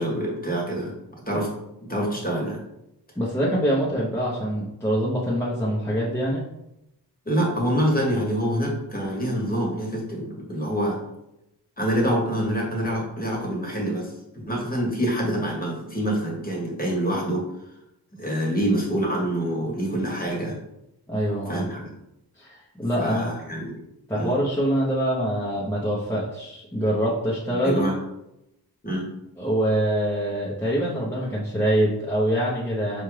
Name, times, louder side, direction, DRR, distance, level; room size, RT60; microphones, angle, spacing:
voice 1, 0.0-1.5 1.9-2.6 7.2-11.0 11.8-17.5 18.1-20.6 21.5-21.9 23.0-23.8 24.1-24.3 27.6-27.9 28.8-29.1, equal, 20° left, -2 dB, 1.2 m, -26 dB
voice 2, 3.2-6.4 21.1-21.7 22.4-23.3 24.1-27.8 29.4-33.0, equal, 5° left, -7 dB, 0.8 m, -24 dB
4.3 x 2.4 x 3.2 m, 0.86 s
cardioid pair, 60°, 40 cm